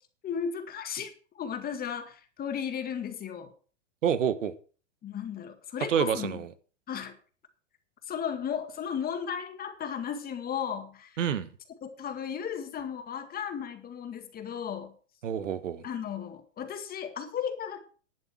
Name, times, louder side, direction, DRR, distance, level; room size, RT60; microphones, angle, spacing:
voice 1, 0.2-3.5 5.0-6.4 6.9-7.2 8.0-11.2 11.8-14.9 15.8-17.8, left 8 dB, 25° left, 8 dB, 2.0 m, -35 dB
voice 2, 4.0-4.5 5.9-6.5 11.2-11.5 15.2-15.8, right 8 dB, 85° right, 14 dB, 1.2 m, -28 dB
11.0 x 7.3 x 6.2 m, 0.40 s
hypercardioid pair, 125°, 36 cm